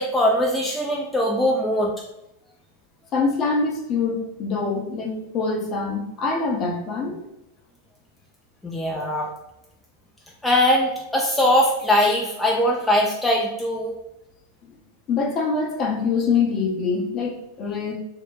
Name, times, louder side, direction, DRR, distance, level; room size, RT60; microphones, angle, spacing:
voice 1, 0.0-1.9 8.6-9.3 10.4-14.0, left 1 dB, 5° left, -2 dB, 0.4 m, -21 dB
voice 2, 3.1-7.2 14.6-14.7 15.1-17.9, left 4 dB, 35° left, 0 dB, 0.7 m, -24 dB
2.8 x 2.2 x 3.7 m, 0.88 s
figure-of-eight pair, 90°, 0 cm